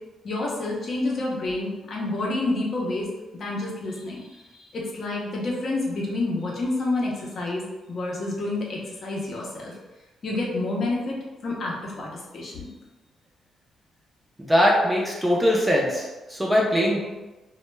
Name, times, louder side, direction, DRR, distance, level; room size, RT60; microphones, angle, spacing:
voice 1, 0.2-3.1 3.3-7.6 7.9-9.7 10.2-11.2 11.4-12.7, left 2 dB, 45° left, -3 dB, 0.6 m, -29 dB
voice 2, 14.5-17.0, equal, 10° right, -3 dB, 0.4 m, -21 dB
2.1 x 2.1 x 3.1 m, 1.1 s
cardioid pair, 130°, 0 cm